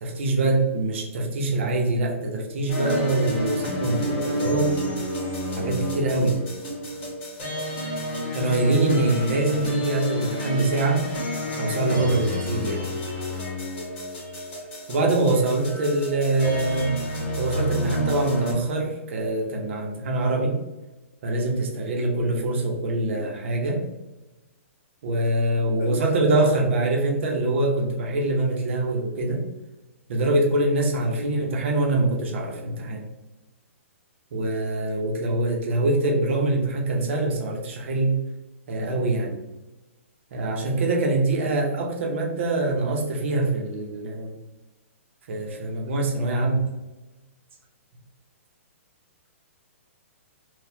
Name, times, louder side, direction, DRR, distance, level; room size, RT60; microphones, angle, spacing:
voice 1, 0.0-5.0 5.6-6.4 8.3-11.0 11.6-13.0 14.9-17.0 17.3-20.6 21.2-23.8 25.0-29.4 30.1-33.1 34.3-38.2 38.7-39.4 40.3-44.4 45.3-46.7, right 2 dB, 60° right, 0 dB, 0.9 m, -24 dB
sound 1, 2.7-18.5, left 1 dB, 30° left, 1.5 m, -30 dB
voice 2, 7.5-7.9 14.9-15.2 23.1-23.2 25.8-26.0 31.1-31.3, left 6 dB, 70° left, 6 dB, 0.5 m, -38 dB
4.0 x 2.4 x 2.8 m, 1.1 s
hypercardioid pair, 135°, 7 cm